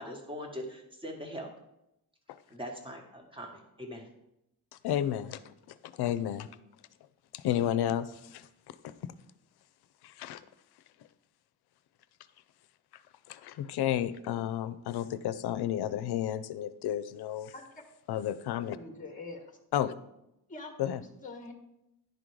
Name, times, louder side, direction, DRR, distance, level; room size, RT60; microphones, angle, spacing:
voice 1, 0.0-1.5 2.5-4.1, equal, 15° right, 2 dB, 1.3 m, -41 dB
voice 2, 4.8-5.5 5.8-6.5 7.3-9.1 10.0-10.4 13.3-17.5 18.1-18.8 19.7-19.9 20.8-21.0, left 11 dB, 80° left, 13 dB, 0.6 m, -32 dB
voice 3, 18.7-19.6 20.5-21.5, left 3 dB, 20° left, 3 dB, 1.2 m, -45 dB
10.5 x 3.8 x 4.7 m, 0.84 s
cardioid pair, 140°, 38 cm